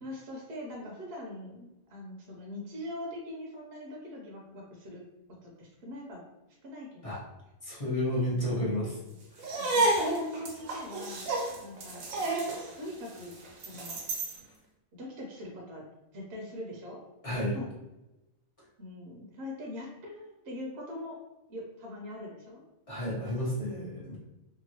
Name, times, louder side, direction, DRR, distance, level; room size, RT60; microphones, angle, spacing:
voice 1, 0.0-5.0 5.4-6.2 6.6-7.1 8.3-9.0 9.6-11.3 11.6-12.1 12.8-13.3 13.6-14.0 15.0-15.8 16.1-17.0 17.2-17.7 18.8-21.2 21.5-22.6 23.7-24.2, left 1 dB, 60° right, -1 dB, 0.8 m, -42 dB
voice 2, 7.6-9.0 9.3-9.6 17.2-17.6 22.9-24.2, left 1 dB, 30° left, -7 dB, 0.8 m, -31 dB
sound 1, 9.4-14.4, right 2 dB, 85° right, 1.1 m, -31 dB
2.8 x 2.5 x 2.8 m, 0.96 s
omnidirectional pair, 1.4 m